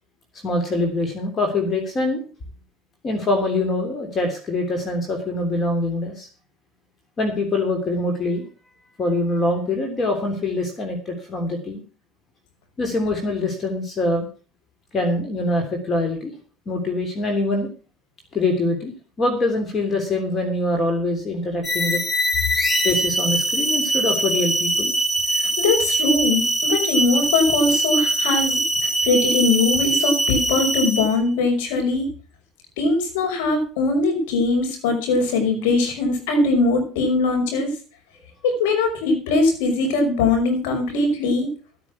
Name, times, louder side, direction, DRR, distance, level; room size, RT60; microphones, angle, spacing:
voice 1, 0.4-2.2 3.0-6.3 7.2-8.4 9.0-11.8 12.8-14.3 14.9-16.3 16.7-17.7 18.3-18.9 19.2-22.0 22.8-24.9, left 2 dB, 35° left, 4 dB, 3.3 m, -24 dB
sound 1, 21.6-31.2, right 1 dB, 15° left, 3.5 m, -22 dB
voice 2, 25.3-32.1 32.8-37.7 38.4-41.5, left 3 dB, 85° left, 4 dB, 5.7 m, -21 dB
13.5 x 9.1 x 6.0 m, 0.38 s
supercardioid pair, 100°, 0 cm